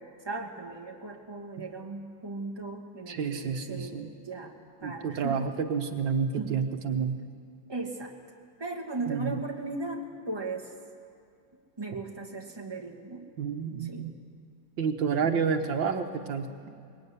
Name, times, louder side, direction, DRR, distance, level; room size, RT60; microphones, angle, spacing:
voice 1, 0.2-4.5 4.8-5.4 6.3-6.6 7.2-7.3 7.7-8.1 8.6-10.7 11.8-13.3 13.8-14.1, right 3 dB, 15° right, 0 dB, 2.3 m, -37 dB
voice 2, 3.1-4.1 4.8-7.2 9.1-9.4 13.4-14.1 14.8-16.5, right 6 dB, 80° right, 5 dB, 2.0 m, -29 dB
23.5 x 21.0 x 9.7 m, 2.3 s
omnidirectional pair, 2.1 m